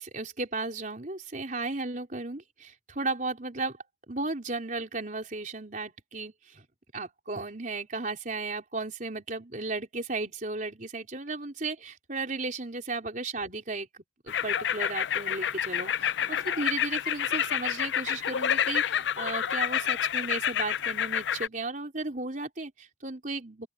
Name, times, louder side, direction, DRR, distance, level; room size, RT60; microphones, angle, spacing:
voice 1, 0.0-3.8 4.1-6.6 6.9-13.9 14.2-16.1 16.5-23.7, right 3 dB, 45° right, 4.3 m, -35 dB
sound 1, 14.3-21.5, left 9 dB, 70° left, 0.4 m, -29 dB
open air
head